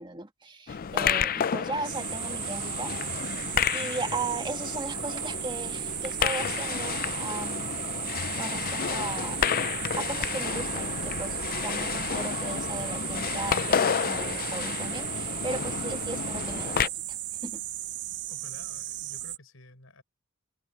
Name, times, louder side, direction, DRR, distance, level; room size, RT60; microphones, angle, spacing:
voice 1, 0.0-3.5 3.7-7.8 8.4-9.4 10.0-17.2 17.4-17.6, right 3 dB, 25° right, 2.0 m, -37 dB
sound 1, 0.7-16.9, left 7 dB, 45° left, 0.4 m, -31 dB
sound 2, 1.8-19.4, right 14 dB, 60° right, 0.8 m, -35 dB
voice 2, 18.3-20.0, left 2 dB, 85° left, 5.1 m, -52 dB
head